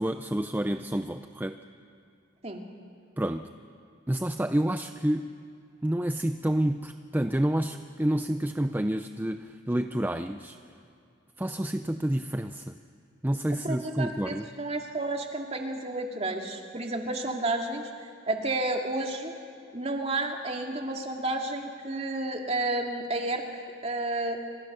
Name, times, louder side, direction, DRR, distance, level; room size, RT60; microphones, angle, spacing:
voice 1, 0.0-1.6 3.2-3.5 4.1-5.3 5.8-10.6 11.4-12.8 13.2-14.4, right 1 dB, 10° right, 8 dB, 0.5 m, -29 dB
voice 2, 13.6-17.9 18.3-19.3 19.7-24.4, right 2 dB, 30° right, 2 dB, 2.3 m, -31 dB
28.0 x 26.0 x 6.7 m, 2.4 s
head